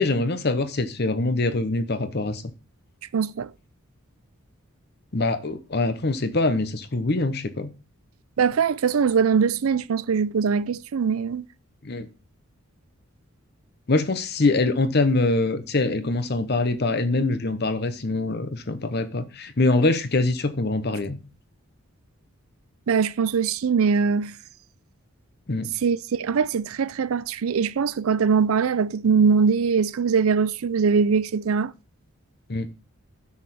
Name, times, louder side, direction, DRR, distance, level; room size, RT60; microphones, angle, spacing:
voice 1, 0.0-2.4 5.1-7.7 11.8-12.1 13.9-21.2 25.5-25.7 32.5-32.7, left 2 dB, 50° left, 0.8 m, -24 dB
voice 2, 3.1-3.5 8.4-11.4 22.9-24.3 25.8-31.7, right 6 dB, 75° right, 0.4 m, -22 dB
8.4 x 6.5 x 4.2 m
head